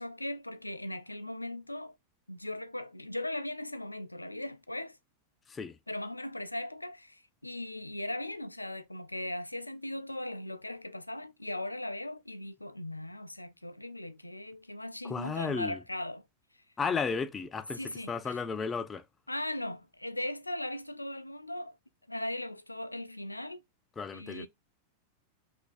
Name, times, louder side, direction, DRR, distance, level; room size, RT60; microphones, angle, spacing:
voice 1, 0.0-2.0 2.3-5.0 5.9-16.2 17.7-18.4 19.3-21.8 22.1-23.6 24.1-24.5, left 1 dB, 85° left, 0.5 m, -38 dB
voice 2, 15.0-15.8 16.8-17.8 18.1-19.0 24.0-24.5, left 5 dB, 20° left, 0.5 m, -33 dB
7.9 x 2.7 x 2.5 m
figure-of-eight pair, 90°, 0 cm